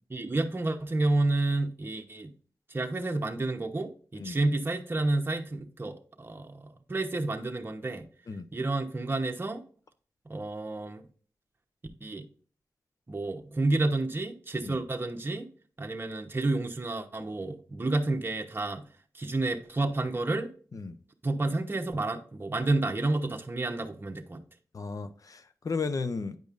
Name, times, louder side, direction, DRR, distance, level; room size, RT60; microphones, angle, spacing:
voice 1, 0.1-2.3 2.7-8.1 8.5-9.6 10.3-11.0 12.0-12.3 13.1-15.5 15.8-18.9 19.1-20.5 21.2-24.4, right 2 dB, 35° right, 1.0 m, -30 dB
voice 2, 24.7-26.4, left 4 dB, 60° left, 0.7 m, -34 dB
9.1 x 5.2 x 2.5 m
cardioid pair, 60°, 6 cm